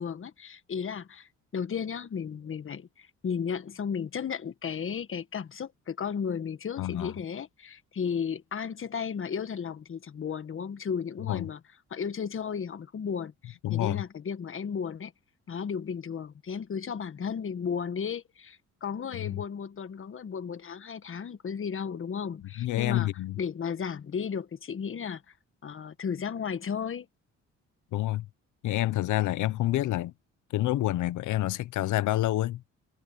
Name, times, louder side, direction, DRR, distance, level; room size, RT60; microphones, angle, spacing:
voice 1, 0.0-11.6 11.9-15.1 15.5-23.1 23.4-25.2 25.6-27.1, left 7 dB, 45° left, 1.5 m, -34 dB
voice 2, 6.8-7.1 11.3-11.5 13.6-14.0 19.1-19.4 22.6-23.4 27.9-28.3 28.6-30.1 30.5-32.6, left 15 dB, 75° left, 0.8 m, -28 dB
cardioid pair, 90°, 30 cm